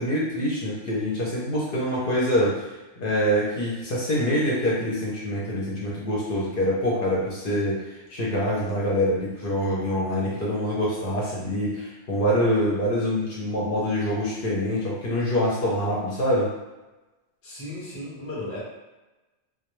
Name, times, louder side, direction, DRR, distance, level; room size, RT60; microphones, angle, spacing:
voice 1, 0.0-2.6 3.0-7.8 8.1-16.5, equal, 55° left, -6 dB, 0.6 m, -25 dB
voice 2, 17.4-18.6, left 1 dB, 20° left, -6 dB, 0.3 m, -35 dB
2.2 x 2.1 x 3.0 m, 1.1 s
omnidirectional pair, 1.3 m